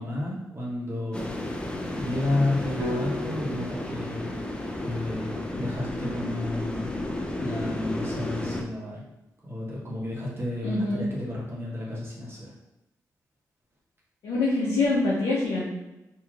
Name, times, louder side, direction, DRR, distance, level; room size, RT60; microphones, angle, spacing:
voice 1, 0.0-1.4 1.9-4.3 4.8-6.9 7.4-9.0 9.4-12.5, left 1 dB, 35° right, -6 dB, 1.1 m, -31 dB
sound 1, 1.1-8.6, left 1 dB, 15° left, 0.5 m, -32 dB
sound 2, 2.8-6.8, left 2 dB, 85° right, 0.8 m, -40 dB
voice 2, 10.6-11.1 14.2-15.7, left 2 dB, 80° left, -7 dB, 0.7 m, -25 dB
2.9 x 2.7 x 2.4 m, 0.98 s
supercardioid pair, 45°, 7 cm